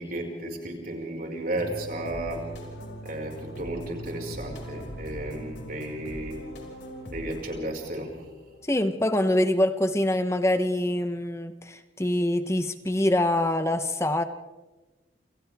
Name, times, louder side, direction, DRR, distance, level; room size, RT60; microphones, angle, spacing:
voice 1, 0.0-2.4 3.0-6.4 7.1-8.1, right 1 dB, 45° right, 1 dB, 5.2 m, -33 dB
sound 1, 1.6-9.3, equal, 65° left, 5.5 m, -41 dB
voice 2, 8.6-14.2, left 1 dB, 15° left, 9 dB, 0.9 m, -25 dB
28.5 x 27.5 x 3.5 m, 1.2 s
head